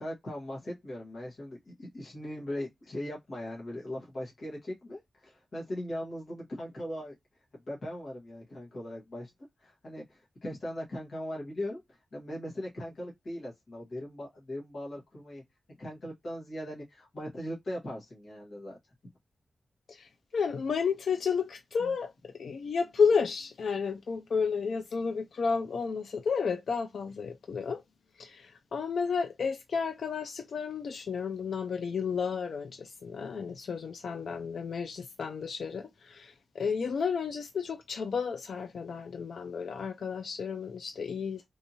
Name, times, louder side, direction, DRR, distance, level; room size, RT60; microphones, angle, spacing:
voice 1, 0.0-7.1 7.7-9.3 9.6-15.4 15.7-18.8 21.8-21.9, left 1 dB, 55° left, 1.4 m, -39 dB
voice 2, 19.9-27.8 28.2-41.4, left 5 dB, 80° left, 0.3 m, -32 dB
3.5 x 2.8 x 2.6 m
wide cardioid pair, 145°, 0 cm